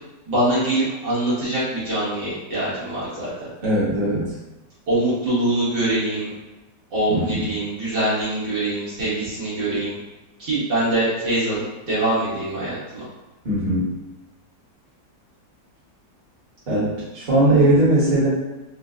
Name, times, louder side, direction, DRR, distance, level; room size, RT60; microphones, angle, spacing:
voice 1, 0.3-3.3 4.9-6.3 6.9-10.0 10.4-13.0, right 1 dB, 80° right, -10 dB, 2.3 m, -23 dB
voice 2, 3.6-4.3 7.1-7.4 13.4-13.9 16.7-18.3, right 1 dB, 35° right, -8 dB, 1.2 m, -19 dB
5.0 x 2.2 x 2.5 m, 1.0 s
omnidirectional pair, 1.9 m